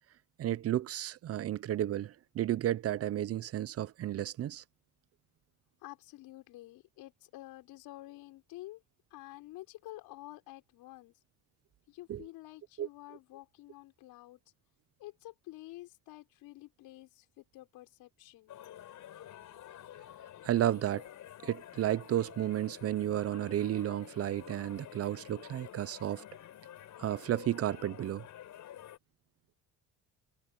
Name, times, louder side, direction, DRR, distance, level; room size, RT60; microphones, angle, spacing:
voice 1, 0.4-4.6 12.1-12.2 12.8-12.9 20.4-21.1 21.4-26.2 27.0-28.2, right 12 dB, 45° right, 0.6 m, -32 dB
voice 2, 5.8-8.8 9.1-11.1 11.9-14.4 15.0-18.6, left 17 dB, 85° left, 5.7 m, -50 dB
sound 1, 18.5-29.0, left 11 dB, 60° left, 4.9 m, -50 dB
cardioid pair, 130°, 35 cm